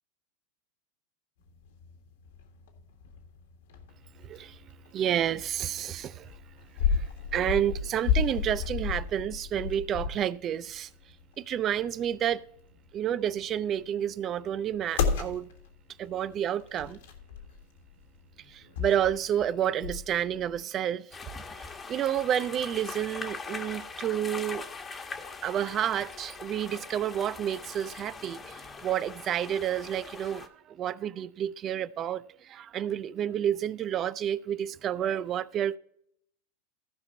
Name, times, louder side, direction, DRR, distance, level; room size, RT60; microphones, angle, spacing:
sound 1, 1.4-20.6, left 6 dB, 75° left, 1.7 m, -35 dB
voice 1, 4.2-4.6 4.9-6.3 6.9-7.1 7.3-10.9 11.4-12.4 12.9-15.5 16.0-17.0 18.5-21.1 21.9-24.6 25.4-35.8, right 10 dB, 40° right, 0.4 m, -30 dB
sound 2, 21.1-30.5, left 4 dB, 20° left, 1.2 m, -42 dB
15.5 x 5.1 x 4.3 m
hypercardioid pair, 95°, 0 cm